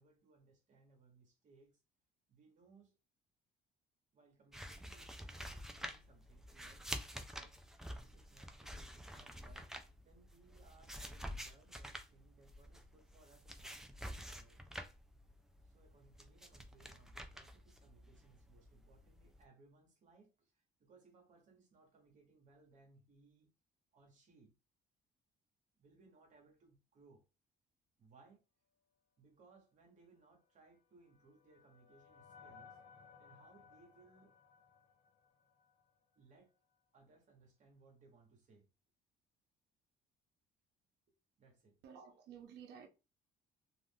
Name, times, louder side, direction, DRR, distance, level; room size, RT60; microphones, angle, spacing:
voice 1, 0.0-1.8 2.3-3.0 4.1-7.6 8.0-14.6 15.6-23.5 23.9-24.5 25.8-27.2 28.0-28.4 29.2-32.8 33.2-34.3 36.1-36.6 36.9-38.7 41.1-41.8, right 3 dB, 50° right, 1.1 m, -66 dB
sound 1, 4.5-19.4, equal, 5° right, 0.4 m, -49 dB
sound 2, 30.7-36.0, left 6 dB, 40° left, 0.7 m, -62 dB
voice 2, 41.8-42.9, right 7 dB, 75° right, 0.7 m, -53 dB
2.5 x 2.4 x 3.4 m
cardioid pair, 110°, 17 cm